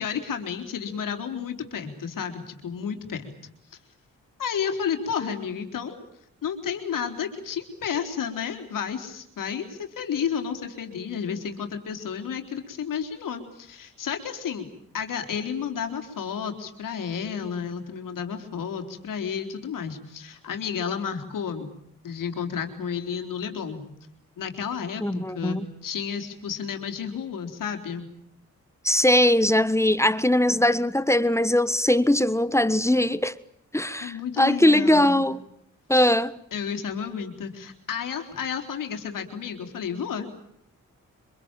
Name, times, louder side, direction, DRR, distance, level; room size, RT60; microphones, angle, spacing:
voice 1, 0.0-3.3 4.4-6.0 6.4-14.7 14.9-21.7 22.0-23.8 24.4-28.1 34.0-35.2 35.9-36.1 36.5-40.3, left 7 dB, 85° left, 3.9 m, -31 dB
voice 2, 25.0-25.7 28.8-33.3 33.7-35.4 35.9-36.4, left 1 dB, 10° left, 1.4 m, -21 dB
25.5 x 23.5 x 9.0 m
cardioid pair, 60°, 32 cm